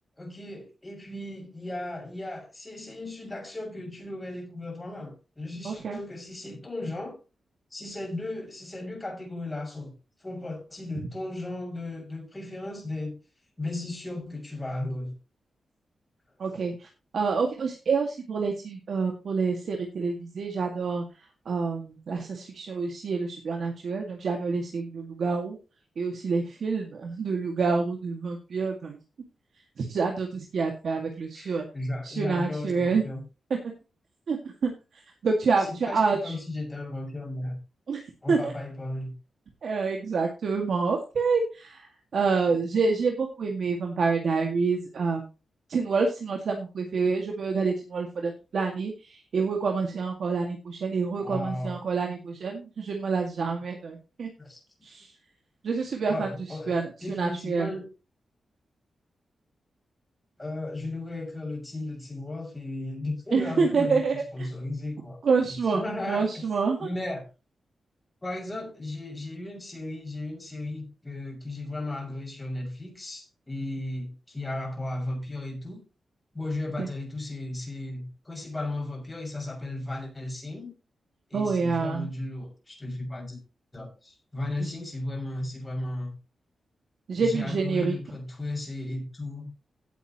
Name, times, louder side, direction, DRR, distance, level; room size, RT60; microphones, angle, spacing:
voice 1, 0.2-7.2 7.7-9.9 10.2-13.1 13.6-15.1 31.3-33.2 35.6-37.6 38.2-39.1 51.2-51.7 54.4-54.6 56.1-57.9 60.4-65.2 65.7-66.4 66.8-67.2 68.2-75.8 76.3-80.7 81.3-83.4 83.7-86.1 87.2-89.5, left 2 dB, 15° left, 6.5 m, -35 dB
voice 2, 5.6-6.0 16.4-16.9 17.1-25.6 26.0-29.0 29.8-31.7 32.0-33.0 34.3-36.3 37.9-38.5 39.6-45.3 45.7-54.3 54.8-55.1 55.6-57.7 63.3-64.5 65.2-65.8 66.1-66.9 76.8-76.9 81.3-82.1 84.6-84.7 87.1-88.0, right 4 dB, 60° right, 2.1 m, -27 dB
17.0 x 8.3 x 3.1 m
wide cardioid pair, 150°, 0 cm